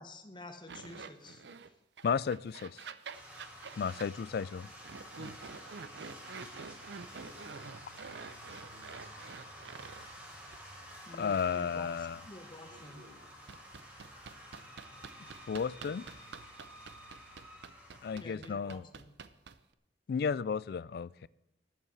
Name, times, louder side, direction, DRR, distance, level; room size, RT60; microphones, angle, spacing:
voice 1, 0.0-1.4 11.1-13.0 18.2-19.1, left 2 dB, 25° left, 1.1 m, -49 dB
sound 1, 0.7-1.7 2.0-4.1 4.8-10.1 10.4-10.6 11.3-11.4 13.5-19.7, right 5 dB, 80° right, 0.6 m, -47 dB
voice 2, 2.0-2.8 3.8-4.7 5.2-5.4 11.2-12.2 15.5-16.1 18.0-18.9 20.1-21.3, left 6 dB, 60° left, 0.3 m, -33 dB
sound 2, 3.1-18.1, equal, 10° right, 2.4 m, -51 dB
voice 3, 5.3-6.3 7.1-7.7 8.7-9.1 11.9-12.0 12.7-13.5, equal, 60° right, 2.8 m, -59 dB
8.1 x 7.8 x 8.5 m
head